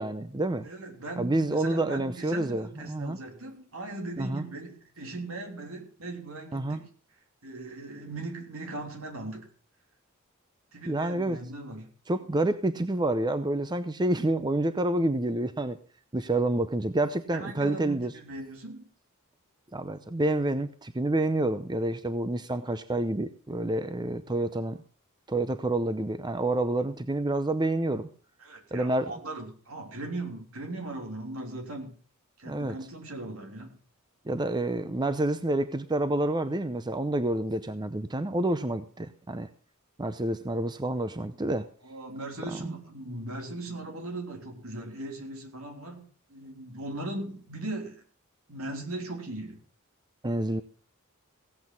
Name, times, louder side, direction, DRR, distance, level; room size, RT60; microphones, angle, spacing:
voice 1, 0.0-0.7 1.2-3.2 4.2-4.4 6.5-6.8 10.9-11.4 12.1-15.8 16.1-18.1 19.7-24.8 25.3-28.1 28.7-29.1 32.4-32.8 34.3-39.5 40.0-41.7 42.6-42.7 50.2-50.6, right 1 dB, 20° right, 11 dB, 0.6 m, -28 dB
voice 2, 0.6-6.9 7.4-9.5 10.7-11.9 17.3-18.9 28.4-32.0 32.4-33.8 41.8-48.0 48.5-49.6, right 2 dB, 70° right, 3 dB, 3.2 m, -39 dB
16.5 x 8.6 x 5.3 m, 0.41 s
head